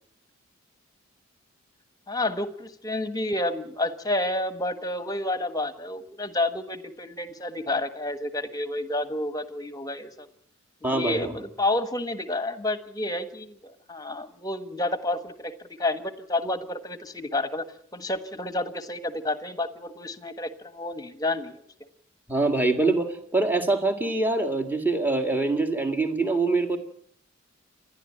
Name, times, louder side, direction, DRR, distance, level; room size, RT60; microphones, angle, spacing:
voice 1, 2.1-10.3 10.8-15.5 15.8-17.6 17.9-21.6, left 2 dB, 20° left, 11 dB, 1.3 m, -30 dB
voice 2, 10.8-11.3 22.3-26.8, right 2 dB, 10° right, 6 dB, 1.9 m, -24 dB
28.5 x 11.0 x 8.8 m, 0.69 s
head